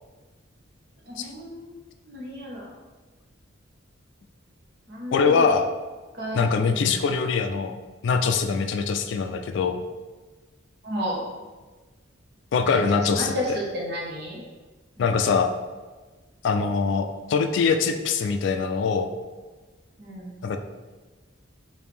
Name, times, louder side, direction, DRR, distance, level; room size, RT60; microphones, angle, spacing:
voice 1, 1.1-1.7 2.0-2.7 4.9-5.5 6.2-7.0 10.8-11.2 12.6-14.4 15.0-15.1 20.0-20.4, equal, 55° right, -3 dB, 1.0 m, -32 dB
voice 2, 5.1-5.7 6.3-7.8 8.0-9.8 12.5-13.6 15.0-15.5 16.4-19.1 20.4-20.6, left 5 dB, 60° left, 7 dB, 0.3 m, -23 dB
5.0 x 2.6 x 3.4 m, 1.3 s
head